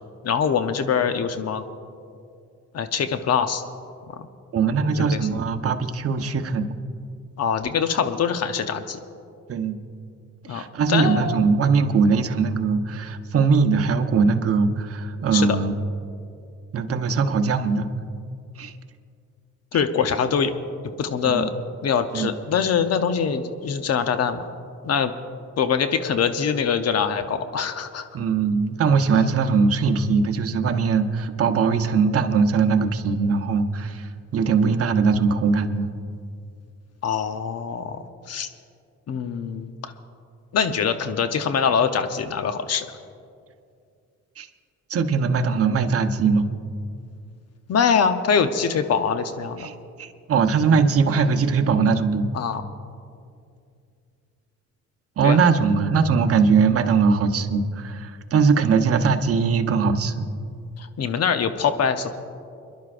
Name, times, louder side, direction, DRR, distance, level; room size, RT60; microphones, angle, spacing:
voice 1, 0.2-1.6 2.7-3.6 4.1-4.2 5.0-5.2 7.4-9.0 10.5-10.6 10.9-11.5 15.3-15.6 19.7-20.6 21.0-21.5 21.8-24.5 24.8-25.1 25.6-28.0 37.0-38.5 39.1-39.7 40.5-42.9 47.7-49.7 52.3-52.6 55.2-55.4 60.8-62.2, left 6 dB, 55° left, 9 dB, 0.9 m, -23 dB
voice 2, 4.5-6.8 9.5-9.8 10.5-15.7 16.7-17.9 18.6-18.7 21.2-21.5 22.1-22.3 28.1-35.9 44.4-44.5 44.9-46.5 49.6-52.3 55.2-60.3, right 5 dB, 50° right, 6 dB, 1.0 m, -21 dB
28.5 x 11.0 x 2.5 m, 2.4 s
cardioid pair, 90°, 30 cm